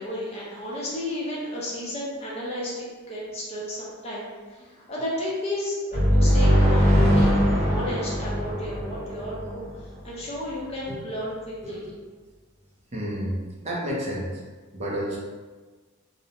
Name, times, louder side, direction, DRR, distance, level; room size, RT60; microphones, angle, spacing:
voice 1, 0.0-7.3 7.6-9.7 10.0-11.9, left 1 dB, 30° left, -6 dB, 0.6 m, -33 dB
sound 1, 5.9-9.7, equal, 45° right, 1.0 m, -21 dB
voice 2, 12.9-14.3 14.7-15.2, equal, 30° right, -3 dB, 0.5 m, -30 dB
2.5 x 2.0 x 2.8 m, 1.4 s
head